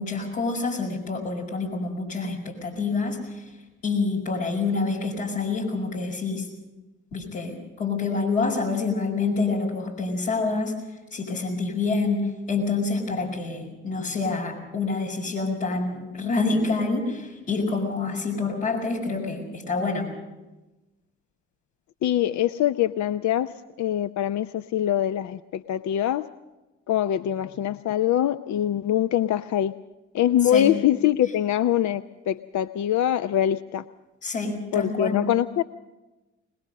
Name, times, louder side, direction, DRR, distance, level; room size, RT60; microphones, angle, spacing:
voice 1, 0.0-3.5 3.8-6.5 7.1-10.7 11.1-20.1 30.4-30.7 34.2-35.2, left 3 dB, 85° left, -4 dB, 5.4 m, -27 dB
voice 2, 22.0-23.5 23.8-26.3 26.9-29.7 30.1-33.8 34.7-35.6, left 11 dB, 55° left, 12 dB, 0.6 m, -23 dB
22.0 x 20.5 x 6.5 m, 1.1 s
hypercardioid pair, 40°, 35 cm